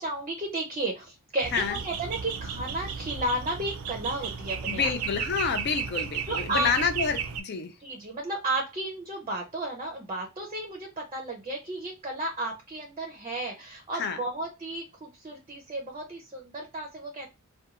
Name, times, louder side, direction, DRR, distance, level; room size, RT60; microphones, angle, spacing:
voice 1, 0.0-4.9 6.3-6.7 7.0-7.1 7.8-17.3, right 1 dB, 25° right, 0.6 m, -33 dB
sound 1, 1.4-7.4, right 7 dB, 75° right, 0.4 m, -34 dB
voice 2, 4.6-7.7 13.9-14.2, left 5 dB, 50° left, 0.5 m, -28 dB
2.6 x 2.2 x 2.8 m
head